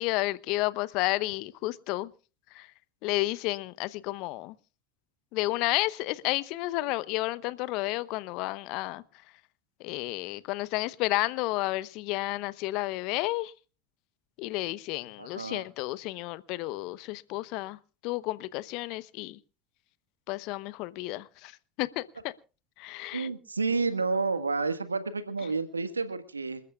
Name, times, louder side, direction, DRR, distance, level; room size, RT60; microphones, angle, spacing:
voice 1, 0.0-2.1 2.5-2.7 3.0-4.5 5.3-9.0 9.8-13.5 14.4-17.8 18.0-19.4 20.3-21.5 21.8-22.3 22.8-23.3, left 19 dB, 55° left, 0.9 m, -31 dB
voice 2, 15.2-15.6 23.1-26.6, right 4 dB, 90° right, 1.6 m, -30 dB
27.5 x 14.0 x 2.4 m
figure-of-eight pair, 75°, 0 cm